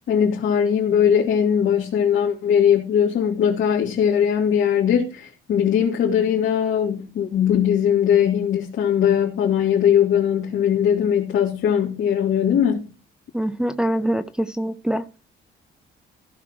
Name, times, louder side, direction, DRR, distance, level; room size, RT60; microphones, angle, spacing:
voice 1, 0.1-12.8, left 8 dB, 80° left, -3 dB, 2.8 m, -20 dB
voice 2, 13.3-15.0, right 1 dB, 5° right, 9 dB, 0.7 m, -24 dB
15.5 x 5.9 x 4.7 m, 0.34 s
cardioid pair, 90°, 20 cm